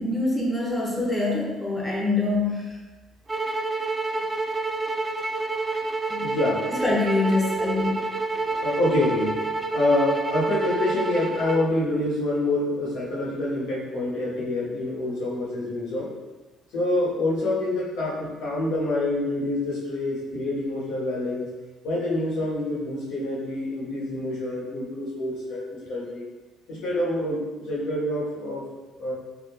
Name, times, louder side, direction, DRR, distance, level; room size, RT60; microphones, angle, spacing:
voice 1, 0.0-2.8 6.1-6.4 6.7-8.1, left 2 dB, 15° left, -4 dB, 1.3 m, -25 dB
sound 1, 3.3-11.7, right 3 dB, 25° right, 0.4 m, -28 dB
voice 2, 6.2-6.6 8.3-9.4 9.7-16.1 16.7-21.5 21.8-26.2 26.7-28.6 29.0-29.1, left 1 dB, 65° left, -7 dB, 1.3 m, -26 dB
3.6 x 3.1 x 3.0 m, 1.2 s
figure-of-eight pair, 45°, 0 cm